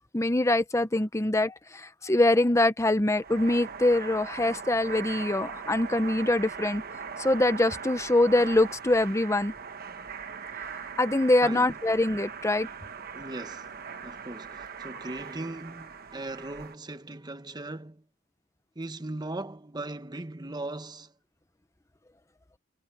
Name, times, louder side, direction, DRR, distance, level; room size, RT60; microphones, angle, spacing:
voice 1, 0.1-6.8 7.2-9.5 11.0-12.7, left 2 dB, 15° left, 0.8 m, -24 dB
sound 1, 3.1-16.7, right 6 dB, 50° right, 1.1 m, -40 dB
voice 2, 11.4-11.7 13.1-18.0 18.7-21.1, right 2 dB, 20° right, 1.1 m, -39 dB
head